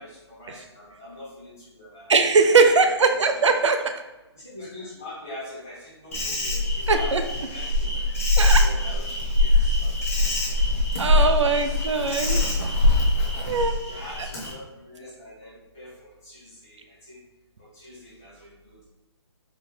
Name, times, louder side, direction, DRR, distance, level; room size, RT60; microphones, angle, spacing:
voice 1, 0.0-2.1 2.6-3.2 4.3-7.1 7.4-8.1 8.6-9.5 9.8-10.5 11.5-11.7 13.9-17.2 17.6-18.8, left 1 dB, 5° left, -11 dB, 0.3 m, -43 dB
voice 2, 2.1-3.8 6.9-7.2 8.4-8.6 11.0-12.4 13.4-13.7, right 4 dB, 90° right, 7 dB, 0.5 m, -20 dB
Insect, 6.1-14.5, left 2 dB, 30° left, 0.7 m, -23 dB
4.3 x 2.2 x 3.3 m, 1.1 s
hypercardioid pair, 180°, 15 cm